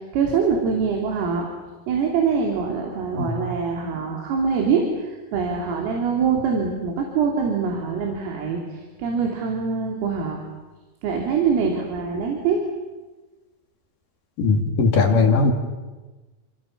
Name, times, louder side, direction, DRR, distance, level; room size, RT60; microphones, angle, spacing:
voice 1, 0.0-1.5 1.9-10.4 11.0-12.6, right 5 dB, 85° right, 1 dB, 5.8 m, -24 dB
voice 2, 14.4-15.5, left 4 dB, 50° left, 4 dB, 3.5 m, -18 dB
28.5 x 28.5 x 7.2 m, 1.2 s
omnidirectional pair, 5.8 m